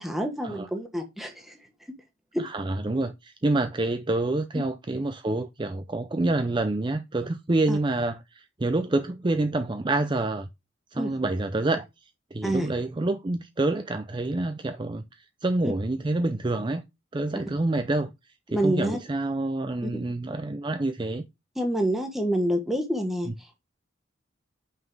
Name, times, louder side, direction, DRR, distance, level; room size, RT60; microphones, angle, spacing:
voice 1, 0.0-1.5 2.3-2.4 7.7-7.8 11.0-11.1 12.4-12.7 15.6-15.7 18.5-19.0 19.8-20.0 21.6-23.3, equal, ahead, 1.4 m, -27 dB
voice 2, 2.4-10.5 10.9-11.9 12.3-16.8 17.1-18.1 18.5-21.2 23.3-23.4, right 2 dB, 25° right, 0.5 m, -27 dB
5.7 x 5.6 x 4.6 m
head